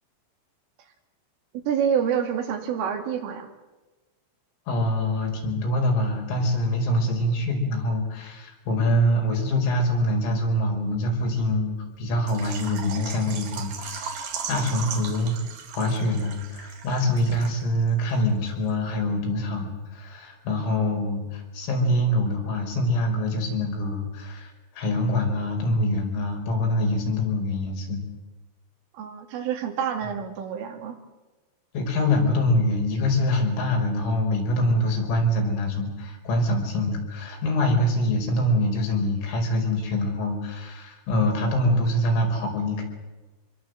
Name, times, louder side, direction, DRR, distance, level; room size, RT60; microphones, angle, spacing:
voice 1, 1.7-3.5 28.9-31.0, right 8 dB, 75° right, 4 dB, 5.0 m, -27 dB
voice 2, 4.7-15.4 15.8-28.0 31.7-42.8, left 1 dB, 75° left, 2 dB, 7.4 m, -25 dB
Water / Liquid, 12.3-17.9 18.1-18.2 18.7-18.8, right 6 dB, 50° right, 3.5 m, -37 dB
26.5 x 22.0 x 7.9 m, 1.2 s
omnidirectional pair, 5.9 m